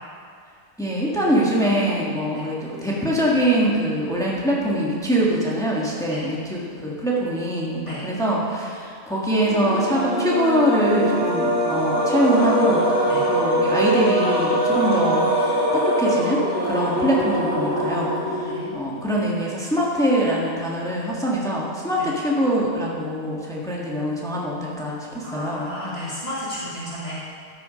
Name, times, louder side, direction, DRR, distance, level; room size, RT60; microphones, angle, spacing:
voice 1, 0.8-15.3 15.7-25.7, equal, 5° left, -4 dB, 1.5 m, -23 dB
sound 1, 9.4-18.8, equal, 45° left, 3.0 m, -22 dB
voice 2, 25.2-27.1, left 1 dB, 25° right, -9 dB, 2.3 m, -33 dB
13.0 x 7.1 x 5.2 m, 2.2 s
omnidirectional pair, 1.2 m